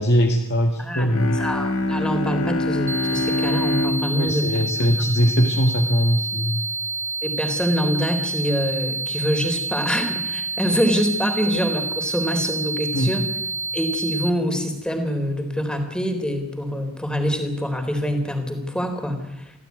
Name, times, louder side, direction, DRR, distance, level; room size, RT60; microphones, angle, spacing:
voice 1, 0.0-1.4 4.2-6.6 12.9-13.1, equal, 50° left, 4 dB, 2.0 m, -20 dB
voice 2, 0.8-4.6 5.0-5.1 7.2-13.3 13.7-19.5, equal, 5° left, 6 dB, 3.7 m, -25 dB
Bowed string instrument, 1.0-5.9, left 1 dB, 70° left, 1.9 m, -26 dB
sound 1, 2.9-14.3, right 3 dB, 10° right, 1.5 m, -28 dB
25.5 x 16.5 x 9.5 m, 0.92 s
head